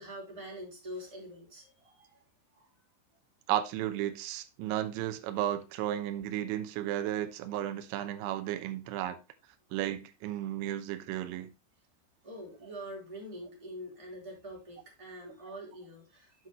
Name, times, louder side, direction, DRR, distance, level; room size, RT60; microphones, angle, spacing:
voice 1, 0.0-2.1 2.6-2.7 12.2-16.5, equal, 10° right, 3.2 m, -45 dB
voice 2, 3.5-9.2 9.7-11.5, right 12 dB, 80° right, 3.1 m, -33 dB
8.1 x 7.9 x 3.1 m
omnidirectional pair, 5.5 m